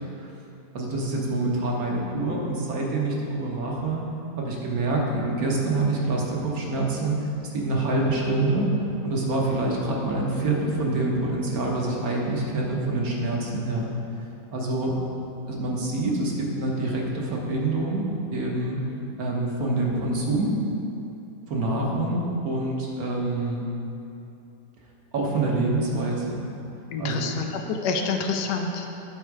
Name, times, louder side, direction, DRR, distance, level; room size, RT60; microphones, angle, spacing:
voice 1, 0.7-4.1 4.4-8.7 9.0-13.9 14.5-15.1 15.5-18.9 19.2-20.5 21.5-23.7 25.1-26.4 27.0-27.3, right 2 dB, 60° right, -2 dB, 1.5 m, -26 dB
voice 2, 26.9-28.9, left 4 dB, 75° left, 3 dB, 1.2 m, -28 dB
10.5 x 4.3 x 4.8 m, 2.8 s
omnidirectional pair, 1.8 m